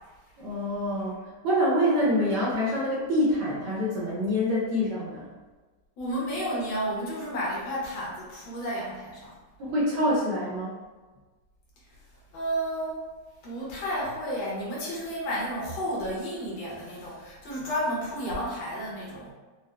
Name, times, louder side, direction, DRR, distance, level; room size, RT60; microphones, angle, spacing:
voice 1, 0.4-1.1 1.4-5.3 9.6-10.7, equal, 65° right, -5 dB, 1.2 m, -26 dB
voice 2, 6.0-9.3 12.3-13.1 13.4-19.3, equal, 70° left, -5 dB, 1.8 m, -32 dB
4.7 x 2.1 x 3.1 m, 1.3 s
omnidirectional pair, 2.4 m